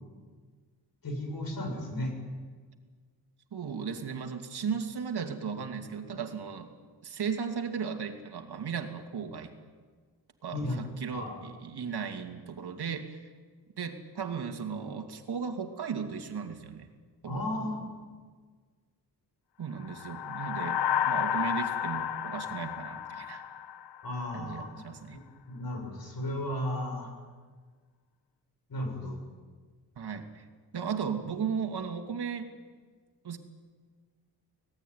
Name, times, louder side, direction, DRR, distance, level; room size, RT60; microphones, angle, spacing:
voice 1, 1.0-2.2 10.5-10.8 11.1-11.3 17.3-17.9 24.0-24.7 25.1-27.1 28.7-29.2, left 1 dB, 55° left, 2 dB, 7.7 m, -34 dB
voice 2, 3.5-6.7 7.0-9.5 10.4-13.3 13.8-16.9 17.2-17.4 19.6-23.4 24.3-25.2 30.0-30.5 30.7-32.5 33.2-33.4, right 6 dB, 65° right, 5 dB, 2.7 m, -36 dB
sound 1, 19.8-24.4, left 9 dB, 75° left, 0.9 m, -32 dB
25.0 x 18.5 x 9.6 m, 1.5 s
wide cardioid pair, 100°, 41 cm